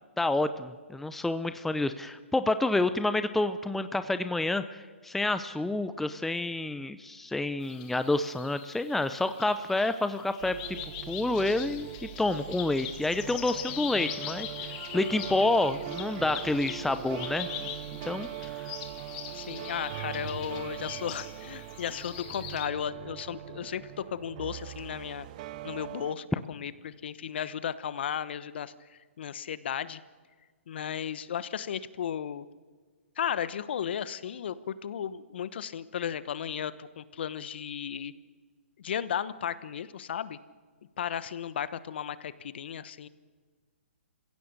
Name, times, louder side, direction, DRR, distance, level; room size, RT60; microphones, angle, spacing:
voice 1, 0.2-10.6 11.1-14.5 14.9-17.7 18.0-18.3, left 2 dB, 5° left, 11 dB, 0.6 m, -28 dB
sound 1, 7.6-22.7, left 11 dB, 35° left, 2.1 m, -42 dB
sound 2, 10.4-26.1, right 13 dB, 40° right, 0.8 m, -41 dB
voice 2, 19.3-25.3 25.6-30.0 30.7-32.4 33.2-38.1 38.8-40.4 41.0-43.1, left 9 dB, 55° left, 16 dB, 1.1 m, -35 dB
27.5 x 16.0 x 6.6 m, 1.5 s
hypercardioid pair, 135°, 7 cm